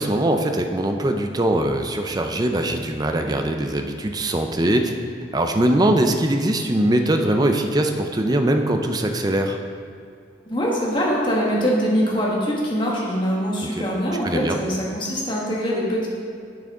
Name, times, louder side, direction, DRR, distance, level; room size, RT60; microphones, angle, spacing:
voice 1, 0.0-4.9 5.3-9.6 13.8-13.9 14.2-14.6, right 1 dB, 20° right, 5 dB, 0.5 m, -21 dB
voice 2, 10.5-16.1, equal, 25° left, -4 dB, 1.6 m, -23 dB
10.0 x 6.2 x 3.7 m, 2.5 s
head